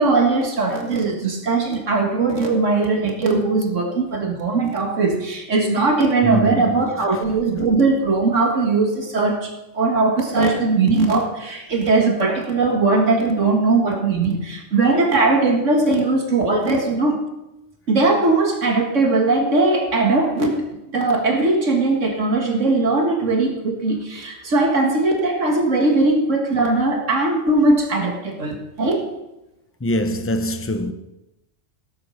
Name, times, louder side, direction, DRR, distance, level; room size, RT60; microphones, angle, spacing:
voice 1, 0.0-9.5 9.7-17.2 17.9-20.6 20.9-29.0, right 3 dB, 90° right, 2.2 m, -19 dB
voice 2, 6.2-7.1 29.8-30.9, equal, 15° left, 0.6 m, -23 dB
17.0 x 8.3 x 5.7 m
omnidirectional pair, 1.2 m